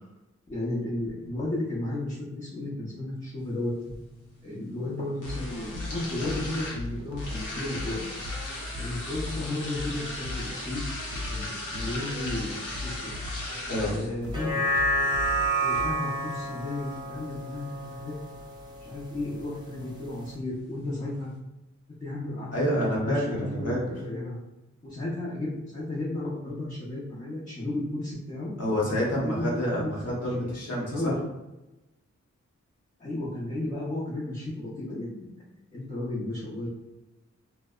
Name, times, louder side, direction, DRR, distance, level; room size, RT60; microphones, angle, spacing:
voice 1, 0.5-3.7 4.4-8.1 8.8-10.8 11.1-13.1 13.9-14.6 15.6-18.1 18.8-21.3 22.0-24.4 24.8-28.5 29.2-29.9 30.2-31.2 33.0-35.3 35.7-36.7, left 1 dB, 25° left, -7 dB, 0.7 m, -33 dB
sound 1, 3.4-21.4, left 1 dB, 90° left, 0.7 m, -40 dB
sound 2, 5.2-15.9, left 2 dB, 65° right, 0.5 m, -38 dB
sound 3, 14.2-18.8 19.2-19.3, right 1 dB, 15° right, 0.5 m, -29 dB
voice 2, 22.5-23.8 28.6-31.1, equal, 55° left, -4 dB, 0.9 m, -28 dB
2.6 x 2.1 x 2.3 m, 0.97 s
cardioid pair, 60°, 30 cm